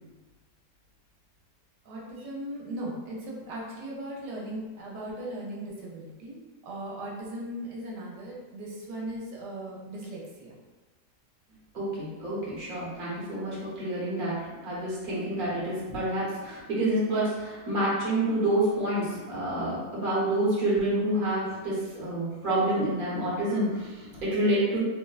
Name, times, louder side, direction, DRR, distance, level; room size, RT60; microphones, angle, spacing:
voice 1, 1.8-6.4 6.6-10.5, right 1 dB, 90° right, -3 dB, 1.3 m, -38 dB
voice 2, 11.7-24.8, right 1 dB, 40° right, -7 dB, 0.9 m, -28 dB
3.7 x 2.0 x 2.3 m, 1.2 s
omnidirectional pair, 1.8 m